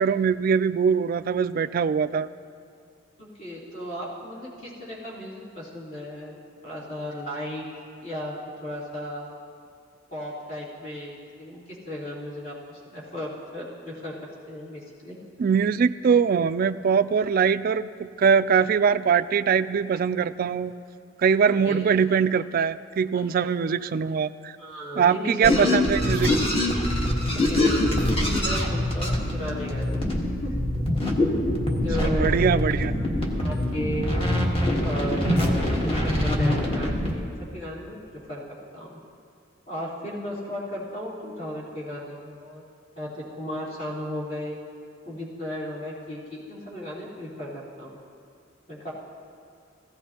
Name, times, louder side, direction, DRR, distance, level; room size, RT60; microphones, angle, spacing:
voice 1, 0.0-2.3 15.4-20.7 21.2-24.6 25.0-26.5 32.2-32.9, right 6 dB, 50° right, 13 dB, 0.3 m, -22 dB
voice 2, 3.2-6.4 6.6-7.6 8.0-8.3 8.6-9.3 10.1-14.1 14.5-15.2 21.5-21.8 23.4-23.5 24.6-25.9 27.5-30.6 31.8-33.1 33.4-34.1 34.8-38.0 38.3-38.4 38.7-39.0 39.7-42.6 42.9-44.6 45.0-48.0 48.7-48.9, equal, 50° left, -8 dB, 3.3 m, -35 dB
sound 1, 25.4-37.1, left 1 dB, 30° left, 1.4 m, -24 dB
17.5 x 15.5 x 2.9 m, 2.4 s
head